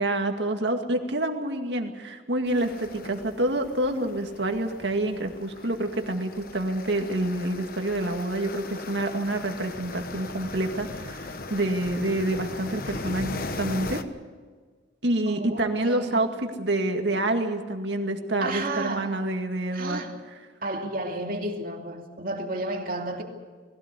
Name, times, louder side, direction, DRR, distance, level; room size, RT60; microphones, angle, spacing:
voice 1, 0.0-14.0 15.0-20.0, right 1 dB, 65° right, 2.1 m, -27 dB
sound 1, 2.5-14.0, left 3 dB, 50° left, 1.1 m, -38 dB
voice 2, 15.3-16.3 18.4-19.2 19.7-20.2 20.6-23.2, right 2 dB, 50° right, 2.6 m, -32 dB
20.0 x 17.0 x 8.3 m
head